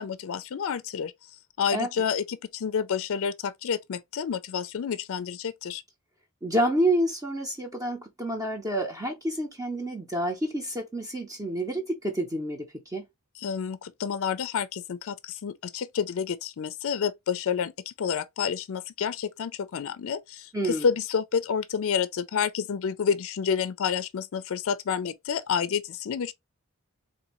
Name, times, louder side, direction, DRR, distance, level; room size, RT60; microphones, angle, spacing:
voice 1, 0.0-5.8 13.4-26.3, left 7 dB, 65° left, 0.4 m, -29 dB
voice 2, 6.4-13.0 20.5-20.9, right 1 dB, 15° right, 0.7 m, -28 dB
4.0 x 2.6 x 2.9 m
head